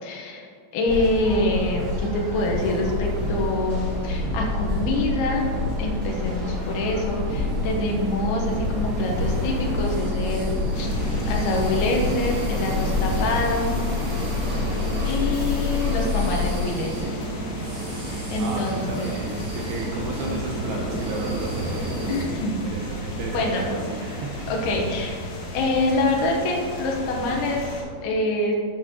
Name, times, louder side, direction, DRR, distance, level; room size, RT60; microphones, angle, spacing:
voice 1, 0.0-5.5 5.8-10.9 11.3-13.8 15.0-17.3 18.1-19.1 22.1-22.6 23.3-24.0 24.5-25.2 25.5-27.6 28.0-28.5, left 2 dB, 75° left, 0 dB, 2.4 m, -26 dB
sound 1, 0.9-16.6, left 3 dB, 40° right, 2.5 m, -27 dB
sound 2, 2.4-22.3, right 2 dB, 65° right, 1.9 m, -33 dB
sound 3, 10.7-27.8, equal, 60° left, 3.0 m, -34 dB
voice 2, 18.4-24.5, right 2 dB, 85° right, -2 dB, 2.2 m, -34 dB
12.5 x 8.7 x 3.0 m, 2.1 s
omnidirectional pair, 5.9 m